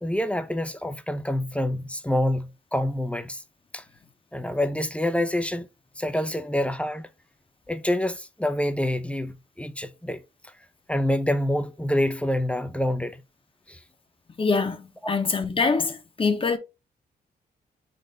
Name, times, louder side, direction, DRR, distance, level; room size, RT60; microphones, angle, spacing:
voice 1, 0.0-3.4 3.7-3.8 4.3-5.7 6.0-7.1 7.7-10.5 10.9-13.2 13.7-13.8 15.0-15.1, left 1 dB, 5° left, 0.5 m, -27 dB
voice 2, 14.4-16.6, left 4 dB, 30° left, 0.9 m, -24 dB
4.0 x 4.0 x 3.3 m
cardioid pair, 95°, 17 cm